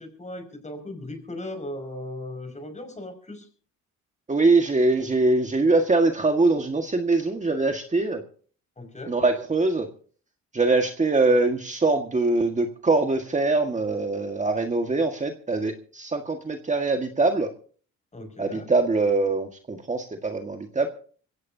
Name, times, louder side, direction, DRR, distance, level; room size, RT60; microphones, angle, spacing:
voice 1, 0.0-3.5 8.8-9.2 18.1-18.7, left 1 dB, 25° left, 6 dB, 5.7 m, -37 dB
voice 2, 4.3-8.2 9.1-9.9 10.5-17.5 18.4-20.9, right 3 dB, 25° right, 4 dB, 1.7 m, -23 dB
22.5 x 16.5 x 2.8 m, 0.43 s
cardioid pair, 90°, 30 cm